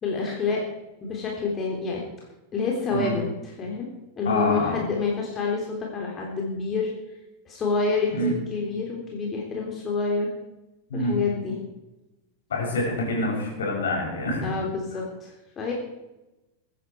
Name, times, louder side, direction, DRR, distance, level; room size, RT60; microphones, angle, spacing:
voice 1, 0.0-0.6 1.0-2.0 2.5-3.9 4.2-6.9 7.4-10.3 10.9-11.5 14.4-15.7, left 4 dB, 25° left, -1 dB, 3.5 m, -28 dB
voice 2, 2.9-3.2 4.2-4.8 8.1-8.3 10.9-11.2 12.5-14.5, left 1 dB, 65° left, -1 dB, 6.5 m, -26 dB
22.5 x 11.0 x 4.8 m, 1.0 s
figure-of-eight pair, 90°, 0 cm